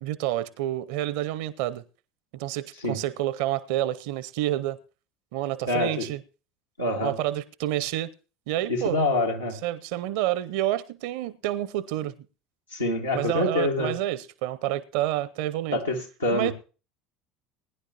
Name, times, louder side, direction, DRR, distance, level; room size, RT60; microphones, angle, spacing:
voice 1, 0.0-1.8 2.3-4.8 5.3-6.2 7.0-8.1 8.5-9.0 9.6-12.1 13.1-15.8 16.3-16.5, right 14 dB, 60° right, 0.7 m, -28 dB
voice 2, 5.7-6.1 6.8-7.2 8.7-9.6 12.7-13.9 15.7-16.5, left 2 dB, 90° left, 1.9 m, -26 dB
19.5 x 10.0 x 2.9 m
figure-of-eight pair, 70°, 0 cm